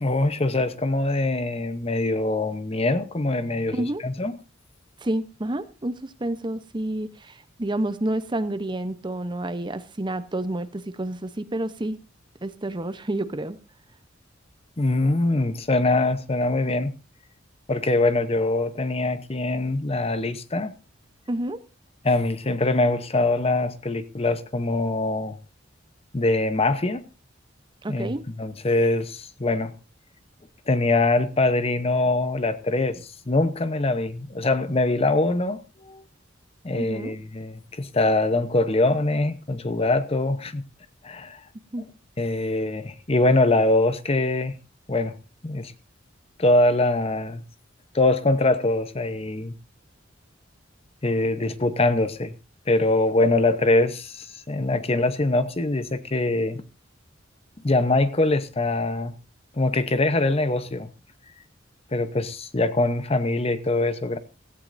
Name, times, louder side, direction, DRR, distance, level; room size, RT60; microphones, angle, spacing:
voice 1, 0.0-4.3 14.8-16.9 17.7-20.7 22.0-25.4 26.1-27.1 27.9-29.7 30.7-36.0 36.6-40.6 41.0-41.4 41.8-41.9 42.2-44.6 44.9-45.1 45.4-45.7 46.4-47.4 47.9-49.5 51.0-52.3 52.7-56.6 57.6-59.1 59.5-60.9 61.9-64.2, left 2 dB, 30° left, 0.8 m, -23 dB
voice 2, 5.0-12.0 12.4-13.6 21.3-21.6 27.8-28.2 36.7-37.1 41.7-41.9, right 1 dB, 25° right, 0.8 m, -29 dB
16.5 x 15.0 x 2.6 m
head